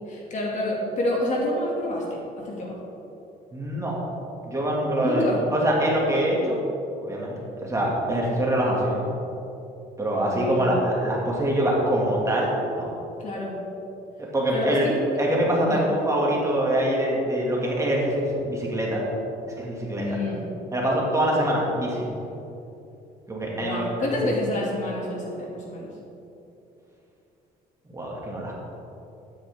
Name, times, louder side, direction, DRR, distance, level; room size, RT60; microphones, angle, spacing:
voice 1, 0.1-2.8 5.0-5.4 10.2-10.7 13.2-13.6 14.5-15.0 15.7-15.8 20.0-20.4 23.5-25.9, left 1 dB, 45° left, -3 dB, 2.5 m, -28 dB
voice 2, 3.5-4.0 4.4-6.6 7.0-9.1 10.0-12.8 14.2-14.9 15.2-19.1 19.6-20.2 20.7-22.1 23.3-24.1 27.9-28.6, right 1 dB, 20° right, -4 dB, 2.4 m, -24 dB
12.5 x 9.5 x 3.8 m, 2.9 s
cardioid pair, 110°, 17 cm